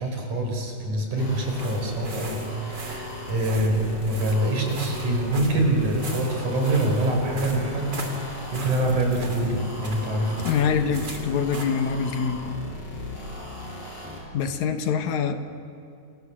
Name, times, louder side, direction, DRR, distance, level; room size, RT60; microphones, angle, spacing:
voice 1, 0.0-10.5, right 1 dB, 70° right, 2 dB, 6.0 m, -25 dB
sound 1, 1.2-14.2, left 2 dB, 50° left, 7.2 m, -37 dB
sound 2, 1.3-11.6, right 2 dB, 35° right, 3.5 m, -40 dB
voice 2, 10.4-12.4 14.3-15.4, left 6 dB, 70° left, 8 dB, 2.6 m, -25 dB
28.0 x 28.0 x 7.5 m, 2.4 s
omnidirectional pair, 3.6 m